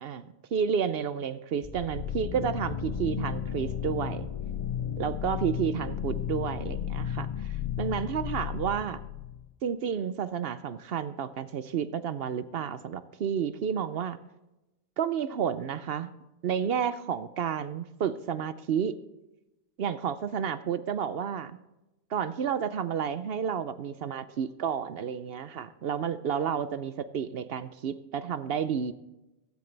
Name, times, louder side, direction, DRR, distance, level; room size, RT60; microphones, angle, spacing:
voice 1, 0.0-4.3 5.0-9.0 9.6-14.2 15.0-16.1 16.4-18.9 19.8-21.6 22.1-28.9, right 7 dB, 65° right, 13 dB, 0.8 m, -31 dB
sound 1, 1.6-9.5, left 9 dB, 45° left, 0.5 m, -34 dB
15.5 x 13.5 x 3.3 m, 0.97 s
omnidirectional pair, 1.1 m